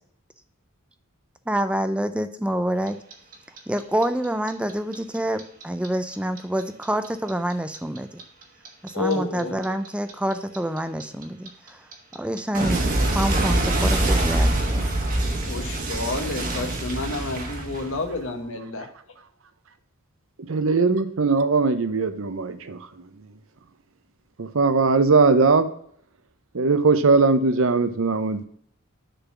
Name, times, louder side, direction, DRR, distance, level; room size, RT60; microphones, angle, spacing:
voice 1, 1.5-3.0 3.7-8.2 8.8-11.8 12.1-12.8 13.1-14.9, right 1 dB, 5° right, 10 dB, 0.4 m, -27 dB
Clock, 2.9-5.9 6.1-9.1 9.4-18.3, right 1 dB, 40° right, 1.3 m, -24 dB
voice 2, 8.9-9.6 15.4-18.9, left 3 dB, 60° left, 6 dB, 1.1 m, -30 dB
voice 3, 20.5-22.8 24.6-25.7 26.5-28.5, right 4 dB, 60° right, 11 dB, 0.6 m, -19 dB
6.6 x 4.0 x 5.9 m, 0.64 s
head